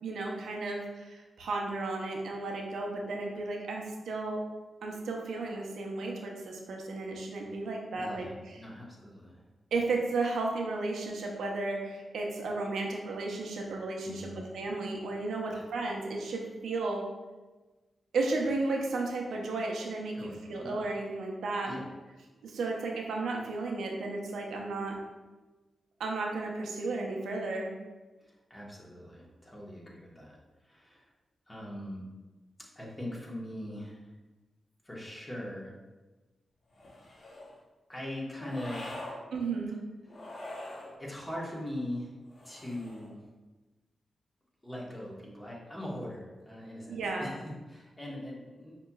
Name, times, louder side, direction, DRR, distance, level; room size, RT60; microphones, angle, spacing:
voice 1, 0.0-4.4 4.8-8.6 9.7-14.3 14.5-17.0 18.1-21.7 22.4-25.0 26.0-27.7 39.3-39.8 46.9-47.3, right 3 dB, 90° right, 0 dB, 0.5 m, -34 dB
voice 2, 7.9-9.4 14.0-14.4 15.5-15.6 20.1-20.7 21.7-21.8 28.2-30.4 30.6-31.1 31.5-32.0 32.7-34.1 34.8-35.7 37.9-39.2 40.0-40.4 41.0-42.1 42.4-43.2 44.6-48.8, left 1 dB, 20° left, -4 dB, 1.2 m, -41 dB
sound 1, 36.7-37.6 38.4-39.2 40.1-41.0 42.3-43.1, left 1 dB, 55° left, 0.9 m, -44 dB
5.4 x 2.9 x 2.3 m, 1.2 s
cardioid pair, 65°, 0 cm